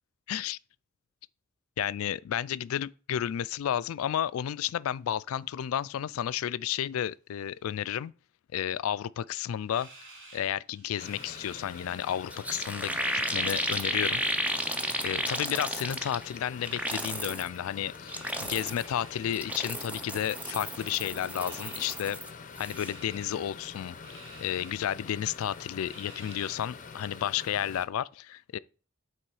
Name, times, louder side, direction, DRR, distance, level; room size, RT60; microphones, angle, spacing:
voice 1, 0.3-0.6 1.8-8.1 8.5-9.9 10.3-13.0 13.3-14.2 15.0-18.1 18.4-22.2 22.6-23.9 24.4-28.6, left 10 dB, 70° left, 0.3 m, -32 dB
sound 1, 9.7-12.2 12.5-13.7 14.4-15.8 16.6-17.3 18.0-19.9 20.4-22.0 22.6-23.3 24.0-24.7 25.2-25.3 25.9-26.7, right 2 dB, 65° right, 2.2 m, -52 dB
sound 2, 11.0-27.8, left 5 dB, 40° left, 0.6 m, -46 dB
sound 3, 12.0-12.1 12.3-16.3 16.6-17.5 18.0-18.9 19.3-22.3 22.6-22.9, right 1 dB, 5° right, 0.6 m, -33 dB
8.8 x 3.2 x 4.7 m
head